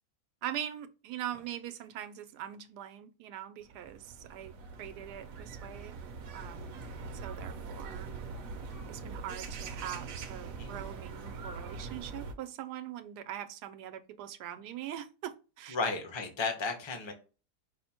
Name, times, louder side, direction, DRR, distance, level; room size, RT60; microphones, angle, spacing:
voice 1, 0.4-4.5 4.8-6.0 6.3-6.8 7.2-8.1 8.9-15.8, right 11 dB, 85° right, 1.2 m, -42 dB
sound 1, 3.6-12.3, right 4 dB, 70° right, 1.0 m, -43 dB
voice 2, 15.7-17.1, left 4 dB, 25° left, 0.6 m, -34 dB
5.7 x 2.1 x 4.2 m
omnidirectional pair, 1.7 m